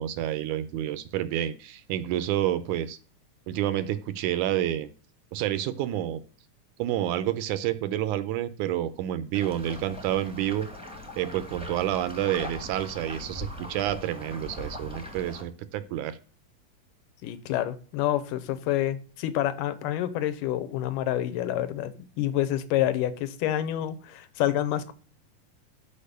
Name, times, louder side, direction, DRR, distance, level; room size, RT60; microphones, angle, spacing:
voice 1, 0.0-3.0 3.5-4.9 5.3-6.2 6.8-10.7 11.2-16.2, right 12 dB, 80° right, 14 dB, 1.9 m, -29 dB
sound 1, 9.3-15.4, left 1 dB, 5° right, 0.9 m, -40 dB
voice 2, 17.2-24.9, left 12 dB, 85° left, 13 dB, 2.4 m, -28 dB
6.6 x 5.4 x 6.5 m, 0.40 s
omnidirectional pair, 3.8 m